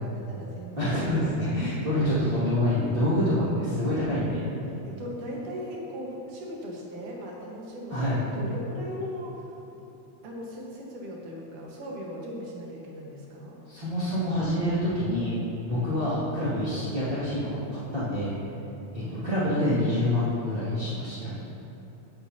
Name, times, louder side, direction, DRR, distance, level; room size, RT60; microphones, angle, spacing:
voice 1, 0.0-1.3 4.8-9.6 10.2-13.6 15.9-16.2 19.0-19.4, equal, 85° right, -2 dB, 2.9 m, -38 dB
voice 2, 0.8-4.4 7.9-8.3 13.7-15.4 15.7-18.4 18.9-21.3, left 1 dB, 20° right, -13 dB, 2.0 m, -26 dB
15.5 x 8.0 x 2.8 m, 3.0 s
omnidirectional pair, 3.4 m